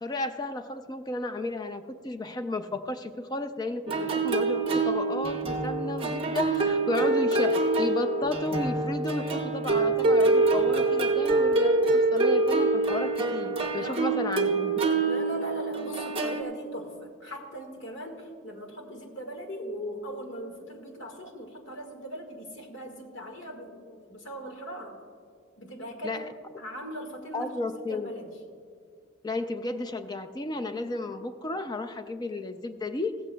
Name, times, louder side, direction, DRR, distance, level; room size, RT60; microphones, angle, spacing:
voice 1, 0.0-14.8 26.0-26.3 27.3-28.1 29.2-33.2, left 2 dB, 20° left, 8 dB, 0.3 m, -33 dB
sound 1, 3.9-16.4, right 3 dB, 30° right, 0.7 m, -25 dB
voice 2, 13.8-14.2 15.0-25.0 25.6-26.2 26.6-28.3, equal, 70° left, 3 dB, 1.6 m, -40 dB
15.5 x 14.5 x 2.2 m, 2.1 s
head